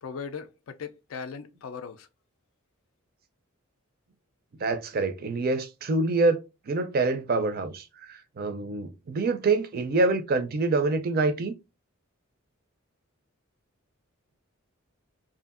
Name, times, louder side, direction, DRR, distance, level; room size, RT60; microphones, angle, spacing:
voice 1, 0.0-2.1, left 6 dB, 70° left, 0.4 m, -38 dB
voice 2, 4.6-11.5, right 3 dB, 45° right, 0.4 m, -26 dB
2.6 x 2.5 x 2.4 m
head